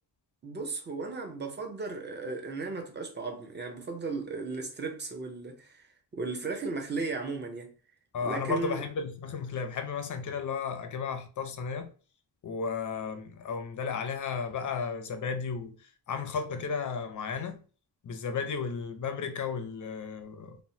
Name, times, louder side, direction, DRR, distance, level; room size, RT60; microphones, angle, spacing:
voice 1, 0.4-5.9 6.1-7.7 8.2-8.8, right 3 dB, 25° right, 0.5 m, -35 dB
voice 2, 8.1-11.9 12.4-15.8 16.1-17.6 18.0-20.6, left 5 dB, 45° left, 0.4 m, -34 dB
3.0 x 2.1 x 2.7 m
wide cardioid pair, 165°, 44 cm